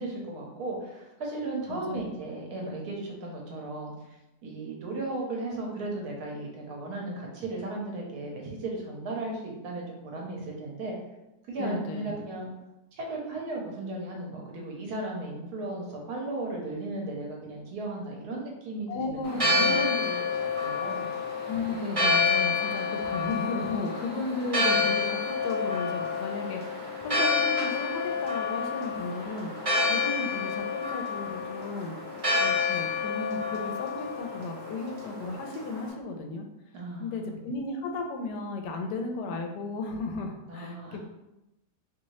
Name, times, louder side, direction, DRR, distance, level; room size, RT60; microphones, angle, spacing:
voice 1, 0.0-3.9 4.4-10.9 11.5-12.5 12.9-21.1 36.7-37.5 40.5-41.0, right 2 dB, 70° right, -1 dB, 1.2 m, -36 dB
voice 2, 1.7-2.0 11.6-12.1 18.9-19.9 21.5-31.9 32.4-36.5 37.0-41.0, left 3 dB, 90° left, 4 dB, 1.2 m, -35 dB
Church bell, 19.2-35.9, left 4 dB, 35° right, 0.6 m, -29 dB
3.0 x 2.7 x 3.0 m, 0.93 s
omnidirectional pair, 1.7 m